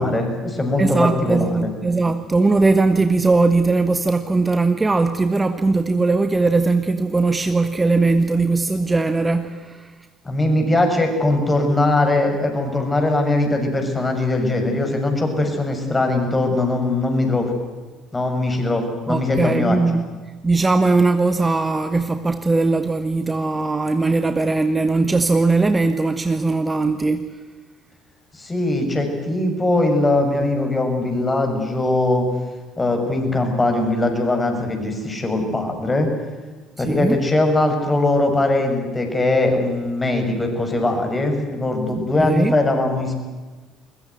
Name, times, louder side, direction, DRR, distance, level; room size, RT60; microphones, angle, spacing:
voice 1, 0.0-1.7 10.2-17.5 18.1-19.8 28.3-32.3 32.8-36.1 36.8-43.1, left 2 dB, 20° left, 4 dB, 6.3 m, -20 dB
voice 2, 0.8-9.9 19.1-20.0 20.4-27.3 36.8-37.2 42.0-42.6, right 3 dB, 20° right, 9 dB, 1.3 m, -19 dB
21.5 x 21.0 x 9.6 m, 1.3 s
figure-of-eight pair, 55°, 0 cm